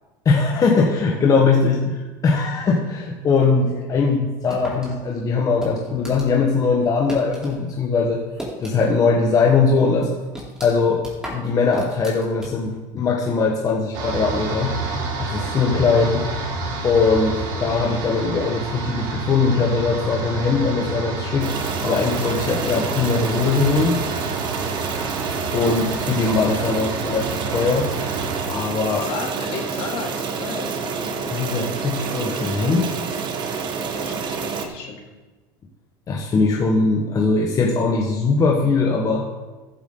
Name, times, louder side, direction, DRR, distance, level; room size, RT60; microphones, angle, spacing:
voice 1, 0.2-8.2 8.6-10.1 10.6-11.0 11.3-14.8 15.2-16.3 16.8-21.5 21.8-24.0 25.5-27.9 28.5-29.1 31.3-32.9 36.1-39.3, left 4 dB, 30° left, 0 dB, 1.5 m, -20 dB
sound 1, 4.5-7.6 7.9-9.1 9.4-9.5 9.9-12.8, right 1 dB, 5° right, 3.7 m, -36 dB
sound 2, 13.9-28.4, right 3 dB, 80° right, 3.3 m, -29 dB
sound 3, 21.4-34.7, right 5 dB, 45° right, 1.4 m, -28 dB
voice 2, 28.9-31.4 33.5-35.0, left 5 dB, 60° left, 0 dB, 3.0 m, -35 dB
14.5 x 8.2 x 4.0 m, 1.3 s
supercardioid pair, 120°, 11 cm